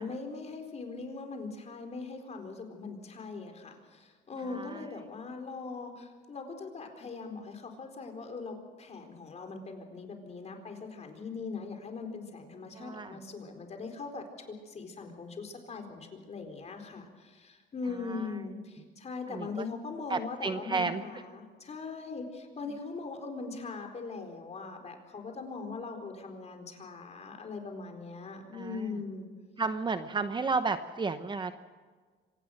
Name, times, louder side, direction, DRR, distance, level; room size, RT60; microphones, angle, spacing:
voice 1, 0.0-29.3, left 4 dB, 35° left, 4 dB, 4.2 m, -41 dB
voice 2, 4.5-4.8 12.7-13.2 18.1-18.3 19.3-19.7 20.1-21.0 28.5-29.0 29.6-31.5, right 4 dB, 25° right, 10 dB, 0.9 m, -32 dB
25.5 x 18.0 x 6.5 m, 1.5 s
cardioid pair, 130°, 19 cm